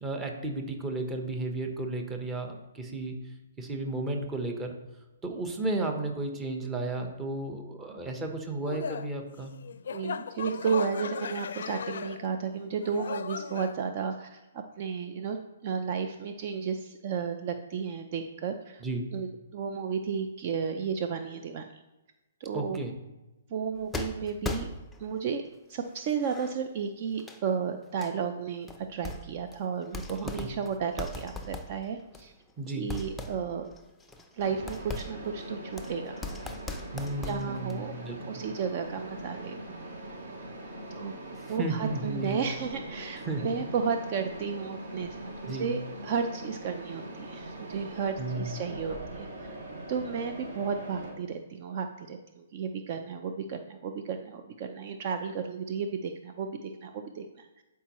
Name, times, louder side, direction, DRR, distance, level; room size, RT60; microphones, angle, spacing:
voice 1, 0.0-3.1 3.6-4.7 5.2-9.5 18.8-19.1 22.5-22.9 30.2-30.5 32.6-32.9 36.9-38.2 41.6-42.4 43.3-43.5 45.5-45.7 48.2-48.6, right 2 dB, 15° right, 3 dB, 1.0 m, -33 dB
sound 1, 8.6-12.4 12.8-13.7, left 6 dB, 70° left, 0.4 m, -37 dB
voice 2, 9.9-15.4 15.6-18.8 19.1-21.8 22.4-22.8 23.5-24.7 25.0-25.4 25.7-32.3 32.7-33.7 34.3-36.2 37.2-38.0 38.2-39.8 40.9-41.2 41.5-45.2 45.4-49.6 49.9-57.6, right 6 dB, 45° right, 6 dB, 0.5 m, -33 dB
sound 2, 23.9-25.2 25.9-26.6 27.2-27.4 28.0-28.1 28.7-29.5 29.8-32.5 32.9-37.8, left 2 dB, 5° left, 0.5 m, -39 dB
Mechanisms, 34.4-51.1, right 1 dB, 65° right, 2.6 m, -42 dB
11.5 x 4.6 x 3.1 m, 1.0 s
hypercardioid pair, 145°, 0 cm